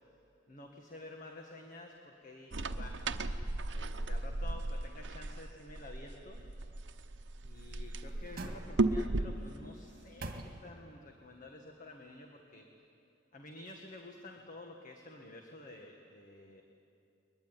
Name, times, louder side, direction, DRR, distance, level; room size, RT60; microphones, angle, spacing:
voice 1, 0.5-3.0 3.7-6.4 7.4-12.7 13.3-16.6, left 2 dB, 45° left, 2 dB, 1.7 m, -51 dB
sound 1, 2.5-9.4, right 2 dB, 70° right, 0.9 m, -36 dB
sound 2, 7.5-9.2 9.7-11.0 11.4-11.5, right 2 dB, 50° right, 1.9 m, -47 dB
22.0 x 21.0 x 9.8 m, 2.7 s
head